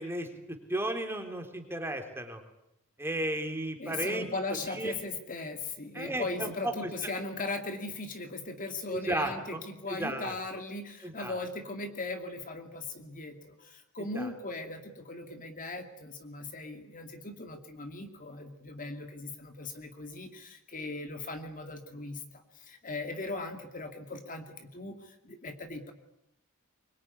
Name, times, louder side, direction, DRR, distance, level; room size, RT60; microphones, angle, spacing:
voice 1, 0.0-2.4 3.0-4.3 4.6-5.0 5.9-7.1 8.9-9.6 9.9-10.3 11.0-11.3 14.1-14.3, right 1 dB, 10° right, 5 dB, 3.4 m, -34 dB
voice 2, 3.8-25.9, left 2 dB, 40° left, 6 dB, 2.5 m, -38 dB
24.0 x 22.5 x 9.7 m, 0.79 s
head